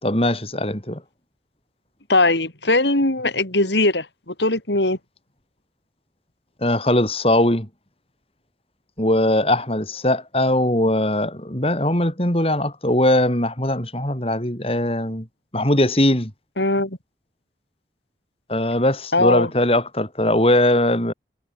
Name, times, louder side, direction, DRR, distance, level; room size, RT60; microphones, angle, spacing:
voice 1, 0.0-1.0 6.6-7.7 9.0-15.3 15.5-16.3 18.5-21.1, left 1 dB, 35° left, 5.4 m, -20 dB
voice 2, 2.1-5.0 16.6-17.0 19.1-19.5, left 2 dB, 85° left, 6.7 m, -20 dB
head